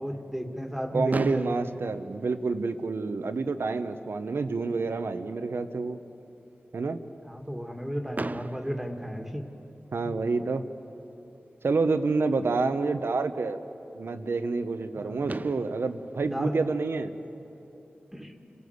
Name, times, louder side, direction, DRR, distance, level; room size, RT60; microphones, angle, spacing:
voice 1, 0.0-1.8 7.2-9.5 15.0-15.4 16.2-16.7 18.1-18.3, equal, 5° right, 4 dB, 2.0 m, -34 dB
voice 2, 0.9-6.0 6.7-7.0 9.9-10.6 11.6-13.6 13.9-17.1, right 4 dB, 85° right, 9 dB, 0.9 m, -28 dB
Fireworks, 1.1-3.1 3.9-4.0 4.2-4.4 4.7-4.8 8.1-10.0 11.7-11.8 14.8-14.9 15.3-17.6, right 3 dB, 45° right, 0.5 m, -39 dB
27.0 x 17.0 x 8.0 m, 3.0 s
cardioid pair, 40°, 4 cm